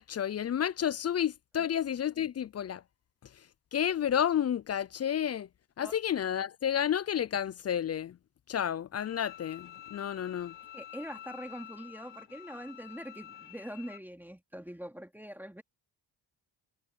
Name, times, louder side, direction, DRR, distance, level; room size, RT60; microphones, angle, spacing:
voice 1, 0.0-2.8 3.7-5.5 5.8-8.2 8.5-10.5, left 9 dB, 40° left, 0.4 m, -31 dB
Bowed string instrument, 9.0-14.0, left 12 dB, 85° left, 1.1 m, -49 dB
voice 2, 10.7-15.6, equal, 5° right, 2.8 m, -43 dB
cardioid pair, 75°, 42 cm